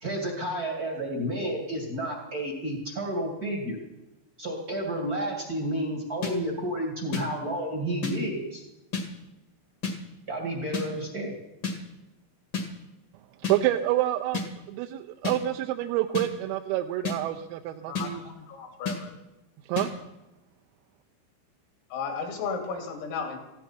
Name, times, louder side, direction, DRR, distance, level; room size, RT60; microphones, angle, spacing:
voice 1, 0.0-3.8 4.4-8.6 10.3-11.4, right 1 dB, 45° right, 0 dB, 1.1 m, -31 dB
sound 1, 6.2-6.3 7.1-7.2 8.0-8.1 8.9-9.1 9.8-10.0 10.7-10.9 11.6-11.8 12.5-12.7 13.4-13.6 14.3-14.5 15.2-15.4 16.1-16.3 17.0-17.2 17.9-18.1 18.9-19.0 19.8-19.9, left 4 dB, 50° left, 1.4 m, -29 dB
voice 2, 13.5-18.2 19.7-19.9, right 14 dB, 85° right, 5 dB, 3.4 m, -28 dB
voice 3, 17.9-19.1 21.9-23.4, left 5 dB, 80° left, 2 dB, 5.3 m, -34 dB
19.5 x 15.5 x 4.4 m, 0.99 s
omnidirectional pair, 5.9 m